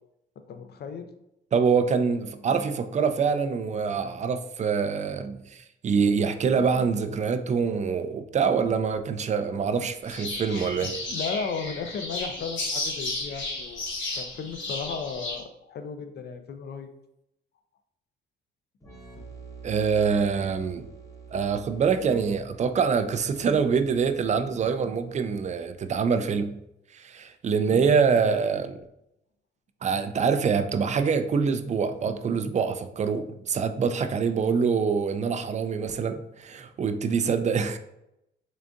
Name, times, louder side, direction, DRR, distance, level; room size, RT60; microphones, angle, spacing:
voice 1, 0.5-1.1 10.8-13.8 14.1-16.9 19.1-19.2 37.1-37.2, left 5 dB, 55° left, 7 dB, 0.5 m, -35 dB
voice 2, 1.5-10.9 19.6-20.9 21.3-26.6 26.9-28.8 29.8-37.8, right 5 dB, 35° right, 10 dB, 0.4 m, -25 dB
sound 1, 10.1-15.4, left 2 dB, 75° left, 1.0 m, -33 dB
sound 2, 18.8-26.3, right 5 dB, 15° left, 0.8 m, -48 dB
3.8 x 3.4 x 2.5 m, 0.83 s
cardioid pair, 90°, 20 cm